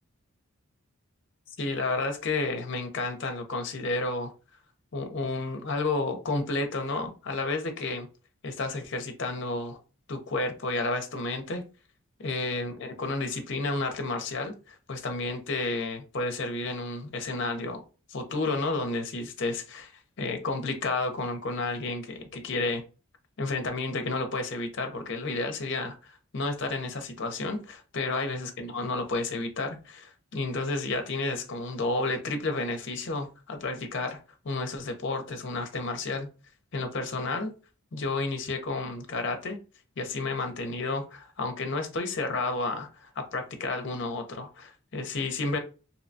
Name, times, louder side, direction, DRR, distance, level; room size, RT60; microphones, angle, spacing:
voice 1, 1.6-4.3 4.9-8.1 8.4-9.8 10.1-11.6 12.2-17.8 18.1-19.9 20.2-22.8 23.4-34.2 34.4-36.3 36.7-37.5 37.9-39.6 40.0-45.6, left 3 dB, 55° left, 0.5 m, -31 dB
2.8 x 2.2 x 2.6 m
head